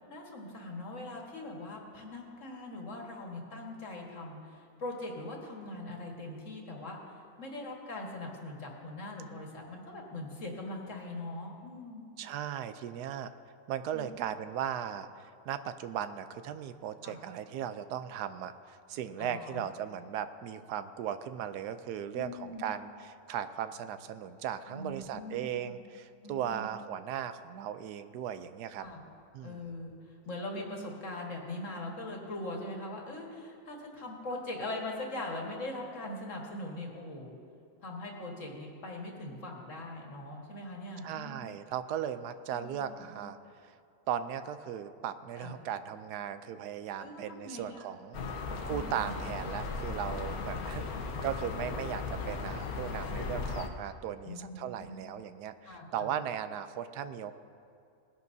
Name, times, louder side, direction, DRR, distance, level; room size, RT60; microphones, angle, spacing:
voice 1, 0.1-12.0 13.9-14.1 17.0-17.2 19.2-19.6 22.1-22.7 24.7-25.7 26.2-26.7 28.8-29.0 29.4-37.4 37.8-41.4 42.5-43.1 45.4-45.5 47.0-47.9 48.1-48.3 48.7-49.1 50.6-50.8 54.2-55.0 55.7-56.1, left 2 dB, 50° left, 0 dB, 1.9 m, -41 dB
voice 2, 12.2-13.3 13.7-28.9 29.3-29.7 41.0-43.8 44.1-48.2 48.6-57.3, right 9 dB, 85° right, 11 dB, 1.2 m, -37 dB
sound 1, 48.1-53.7, left 4 dB, 70° left, 1.3 m, -37 dB
19.0 x 11.0 x 2.7 m, 2.4 s
omnidirectional pair, 1.7 m